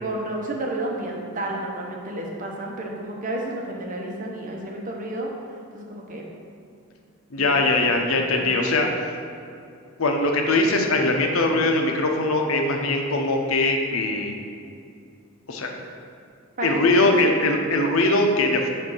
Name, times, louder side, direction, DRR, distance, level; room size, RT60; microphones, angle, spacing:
voice 1, 0.0-5.3 5.7-6.2 7.4-7.5 7.8-8.8 16.6-16.9 17.2-17.6, right 1 dB, 40° right, -1 dB, 0.8 m, -31 dB
voice 2, 7.3-8.9 10.0-14.3 15.5-15.7 16.6-18.7, left 2 dB, 85° left, 2 dB, 0.7 m, -21 dB
7.8 x 2.6 x 5.5 m, 2.5 s
head